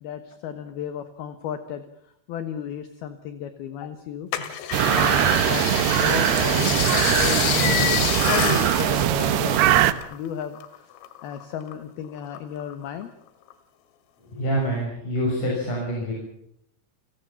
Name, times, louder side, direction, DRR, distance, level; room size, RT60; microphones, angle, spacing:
voice 1, 0.0-1.8 2.3-4.3 4.8-7.9 8.2-9.8 10.1-10.6 11.2-13.1, left 9 dB, 65° left, 10 dB, 2.8 m, -33 dB
sound 1, 4.3-10.2 10.4-11.7 12.2-13.0 13.5-13.6, left 11 dB, 90° left, 4.4 m, -28 dB
sound 2, 4.7-9.9, right 11 dB, 70° right, 2.6 m, -21 dB
voice 2, 14.3-16.1, equal, 40° left, -2 dB, 7.6 m, -26 dB
30.0 x 18.0 x 7.2 m, 0.72 s
omnidirectional pair, 5.7 m